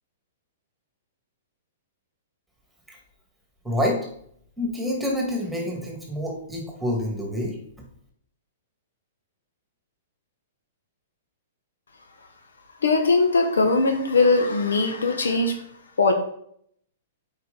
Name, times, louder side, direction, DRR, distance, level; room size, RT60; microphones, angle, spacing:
voice 1, 3.6-4.0 4.6-7.6, left 1 dB, 5° right, 0 dB, 2.0 m, -27 dB
voice 2, 12.8-15.6 16.0-16.1, left 3 dB, 90° left, 5 dB, 1.1 m, -20 dB
7.8 x 4.8 x 4.0 m, 0.67 s
hypercardioid pair, 130°, 0 cm